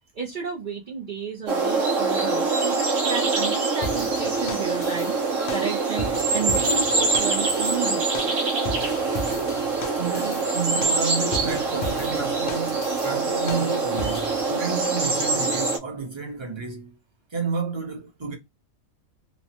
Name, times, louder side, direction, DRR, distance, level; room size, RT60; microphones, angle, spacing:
voice 1, 0.1-8.3, right 6 dB, 45° right, 0.7 m, -33 dB
sound 1, 1.5-15.8, right 3 dB, 70° right, 1.1 m, -24 dB
sound 2, 3.8-14.5, left 1 dB, 60° left, 0.5 m, -37 dB
voice 2, 10.0-17.0 17.3-18.3, right 5 dB, 25° right, 0.9 m, -31 dB
3.1 x 2.1 x 2.8 m
omnidirectional pair, 1.4 m